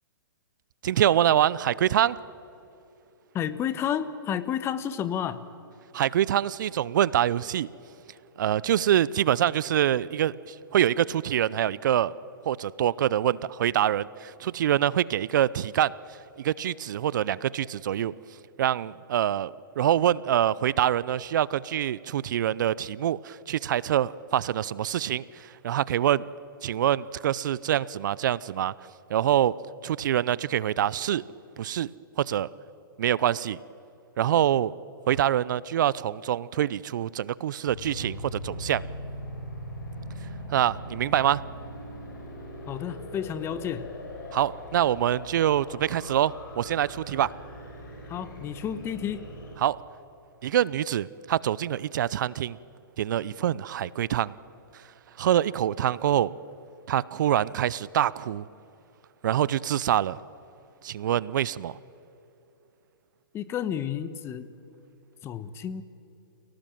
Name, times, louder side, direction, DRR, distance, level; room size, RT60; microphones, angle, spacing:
voice 1, 0.8-2.2 5.9-7.7 8.4-12.1 12.4-15.9 16.4-18.1 18.6-26.2 26.6-28.7 29.1-29.5 29.8-31.2 31.6-31.9 32.2-32.5 33.0-33.6 34.2-34.7 35.1-38.8 40.5-41.4 44.3-47.3 49.6-49.8 50.4-52.6 53.0-54.3 55.2-56.3 56.9-58.5 59.2-60.2 60.8-61.8, right 11 dB, 60° right, 21 dB, 0.6 m, -25 dB
voice 2, 3.3-5.5 42.7-43.9 48.1-49.2 63.3-64.5 65.2-65.8, left 9 dB, 20° left, 13 dB, 1.2 m, -31 dB
sound 1, 37.7-49.6, equal, 60° left, 7.4 m, -40 dB
28.5 x 18.0 x 9.2 m, 2.9 s
hypercardioid pair, 130°, 12 cm